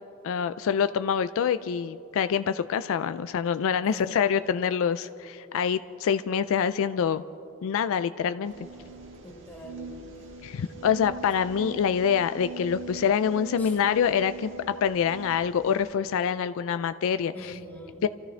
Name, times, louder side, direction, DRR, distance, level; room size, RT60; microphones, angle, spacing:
voice 1, 0.2-7.2 7.6-8.5 10.4-14.5 14.8-17.5 18.0-18.1, left 7 dB, 65° left, 12 dB, 0.3 m, -26 dB
voice 2, 3.8-4.4 9.2-10.3 13.6-13.8 17.3-18.0, left 1 dB, 10° left, 0 dB, 1.7 m, -44 dB
sound 1, 8.4-15.9, right 3 dB, 60° right, 1.5 m, -42 dB
29.5 x 13.5 x 3.3 m, 2.8 s
head